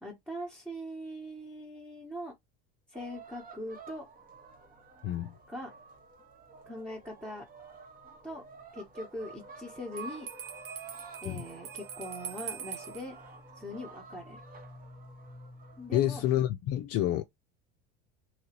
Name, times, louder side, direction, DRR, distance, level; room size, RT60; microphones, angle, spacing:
voice 1, 0.0-2.3 2.9-4.0 5.5-5.7 6.7-7.4 8.2-8.4 8.7-10.3 11.2-13.1 13.5-14.4 15.8-16.2, equal, 5° right, 1.2 m, -41 dB
sound 1, 2.9-16.3, right 3 dB, 30° right, 1.0 m, -49 dB
voice 2, 5.0-5.3 11.2-11.4 15.9-17.2, left 13 dB, 50° left, 0.5 m, -28 dB
Bell, 10.0-13.1, right 8 dB, 65° right, 0.9 m, -43 dB
3.1 x 2.7 x 2.9 m
supercardioid pair, 90°, 30 cm